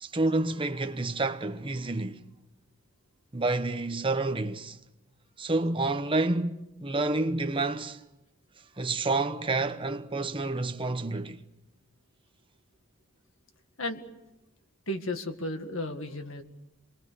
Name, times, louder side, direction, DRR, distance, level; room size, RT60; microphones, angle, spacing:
voice 1, 0.0-2.2 3.3-4.8 5.4-8.0 8.8-11.4, right 2 dB, 25° right, 1.0 m, -29 dB
voice 2, 14.9-16.4, left 1 dB, 75° left, 2.0 m, -34 dB
28.0 x 22.0 x 7.0 m
head